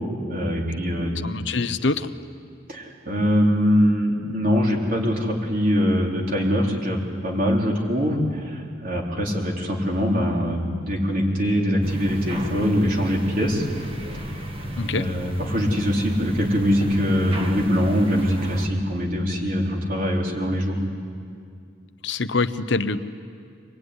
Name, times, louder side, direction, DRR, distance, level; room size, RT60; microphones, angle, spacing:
voice 1, 0.3-1.2 2.7-13.7 14.9-20.8, equal, 45° right, -1 dB, 4.1 m, -23 dB
voice 2, 1.2-2.1 14.8-15.1 22.0-23.0, left 3 dB, 65° left, 11 dB, 1.0 m, -24 dB
sound 1, 11.8-18.7, equal, 30° right, 2.2 m, -31 dB
25.5 x 21.0 x 9.8 m, 2.3 s
head